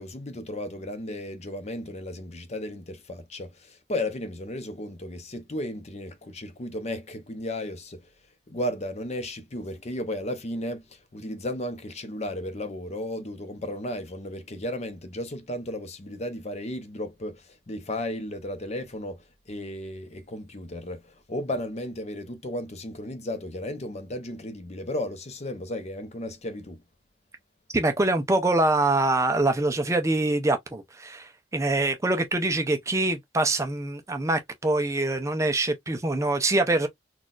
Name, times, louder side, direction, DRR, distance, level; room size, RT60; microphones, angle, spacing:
voice 1, 0.0-8.0 8.5-26.8, left 1 dB, 35° left, 0.6 m, -34 dB
voice 2, 27.7-36.9, right 2 dB, 15° right, 0.4 m, -24 dB
3.9 x 2.3 x 2.4 m
head